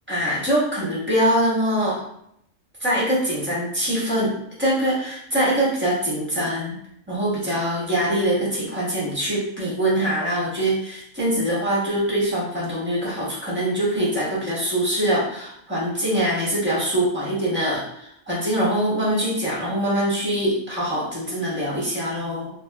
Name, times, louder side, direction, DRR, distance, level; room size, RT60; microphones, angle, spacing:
voice 1, 0.1-2.0 2.8-4.3 4.6-6.8 7.1-22.5, right 1 dB, 10° right, -8 dB, 1.3 m, -23 dB
3.4 x 2.6 x 2.3 m, 0.75 s
omnidirectional pair, 1.3 m